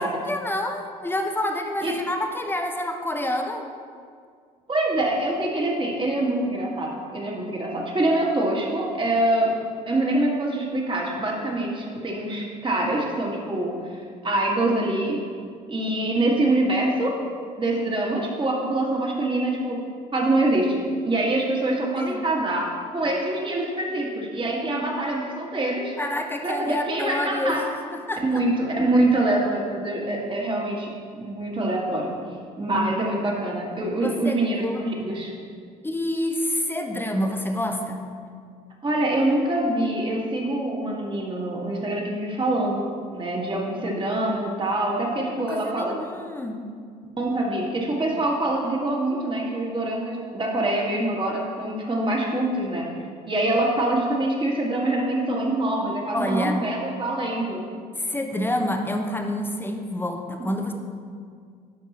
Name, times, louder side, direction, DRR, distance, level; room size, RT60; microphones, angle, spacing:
voice 1, 0.0-3.7 21.9-22.2 26.0-27.6 27.9-28.4 33.9-34.8 35.8-38.1 45.3-46.6 56.1-56.6 58.0-60.7, left 1 dB, 10° left, 3 dB, 0.9 m, -28 dB
voice 2, 4.7-9.5 9.9-15.2 15.7-17.1 17.6-19.8 20.1-20.8 21.0-25.9 26.4-27.6 28.2-32.1 32.6-35.3 38.8-42.8 43.1-45.9 47.2-52.8 53.3-57.6, right 1 dB, 25° right, -2 dB, 1.9 m, -25 dB
11.0 x 5.2 x 3.0 m, 2.1 s
hypercardioid pair, 60°, 20 cm